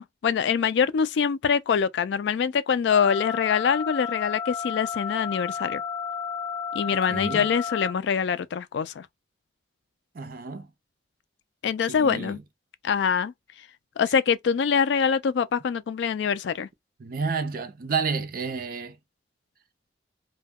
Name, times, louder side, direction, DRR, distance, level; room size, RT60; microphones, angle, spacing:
voice 1, 0.0-5.8 6.7-9.1 11.6-12.4 12.8-13.3 14.0-16.7, left 6 dB, 70° left, 0.3 m, -24 dB
sound 1, 2.9-7.9, left 7 dB, 25° left, 0.9 m, -32 dB
voice 2, 7.1-7.5 10.1-10.7 11.9-12.4 17.0-19.0, right 5 dB, 50° right, 0.5 m, -30 dB
2.2 x 2.1 x 3.4 m
head